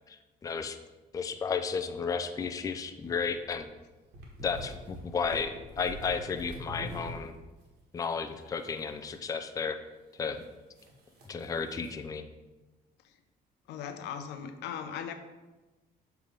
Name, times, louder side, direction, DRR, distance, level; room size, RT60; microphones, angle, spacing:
voice 1, 0.1-0.8 1.1-3.7 4.4-7.3 7.9-9.8 10.2-10.4 11.3-12.2, left 5 dB, 20° left, 8 dB, 0.4 m, -33 dB
sound 1, 3.0-7.3 7.6-7.7 8.6-9.2 10.2-10.4 10.8-12.0, equal, 75° right, 1.6 m, -44 dB
voice 2, 13.7-15.1, left 8 dB, 85° left, 8 dB, 0.7 m, -38 dB
7.0 x 3.4 x 5.1 m, 1.2 s
cardioid pair, 110°, 17 cm